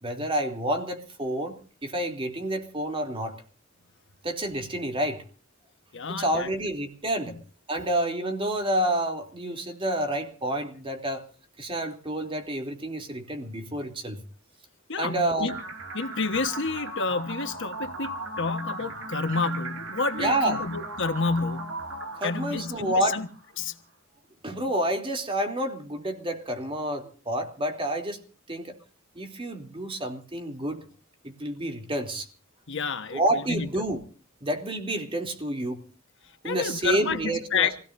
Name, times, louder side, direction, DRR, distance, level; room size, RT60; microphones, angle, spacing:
voice 1, 0.0-3.4 4.2-5.2 6.1-7.4 7.7-11.2 11.6-14.2 15.0-15.5 20.1-20.6 22.2-23.2 24.4-28.2 28.5-28.8 29.1-30.9 31.2-32.3 33.1-34.0 34.4-35.8 36.4-37.7, right 1 dB, 25° right, 3.1 m, -29 dB
voice 2, 5.9-6.5 7.3-7.4 14.9-15.6 15.9-21.7 22.2-23.3 23.6-23.7 32.7-33.7 36.4-37.8, left 4 dB, 60° left, 1.4 m, -29 dB
sound 1, 15.5-23.5, right 2 dB, 75° right, 3.7 m, -37 dB
27.0 x 17.5 x 2.7 m
head